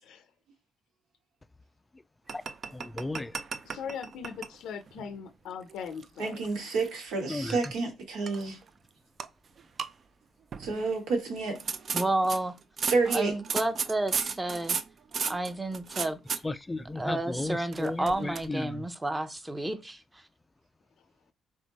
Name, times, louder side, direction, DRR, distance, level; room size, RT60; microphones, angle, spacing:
sound 1, 2.3-4.6 4.9-5.1 5.7-7.2 7.5-7.7 8.3-8.7 9.2-9.3 9.6-9.9 10.5-10.9 11.5-16.4 17.7-18.5, right 6 dB, 50° right, 0.4 m, -34 dB
voice 1, 2.7-3.4 7.3-7.6 16.4-18.9, left 2 dB, 15° left, 0.3 m, -34 dB
voice 2, 3.6-6.4, left 7 dB, 85° left, 0.5 m, -40 dB
voice 3, 6.2-8.6 10.6-11.6 12.9-13.4, right 4 dB, 90° right, 1.7 m, -29 dB
voice 4, 11.9-12.5 13.1-14.8 15.3-16.2 17.0-20.2, right 2 dB, 15° right, 0.7 m, -31 dB
3.5 x 3.5 x 4.0 m
cardioid pair, 90°, 0 cm